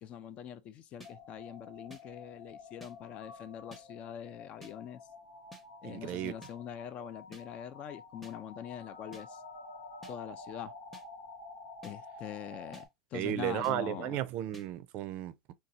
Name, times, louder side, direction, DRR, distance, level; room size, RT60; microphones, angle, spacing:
voice 1, 0.0-5.0 5.8-9.4 10.1-10.7 11.8-14.2, left 9 dB, 40° left, 0.4 m, -43 dB
sound 1, 1.0-12.9, left 3 dB, 90° left, 1.1 m, -50 dB
sound 2, 1.0-1.1 1.9-2.0 2.8-2.9 3.7-3.8 4.6-4.7 5.5-5.6 6.4-6.5 7.3-7.4 8.2-8.3 9.1-9.2 10.0-10.1 10.9-11.0 11.8-12.0 12.7-12.9 13.6-13.8 14.5-14.7, right 1 dB, 5° left, 0.8 m, -51 dB
voice 2, 5.8-6.3 13.1-15.5, right 13 dB, 50° right, 0.4 m, -34 dB
4.0 x 2.3 x 2.6 m
supercardioid pair, 130°, 3 cm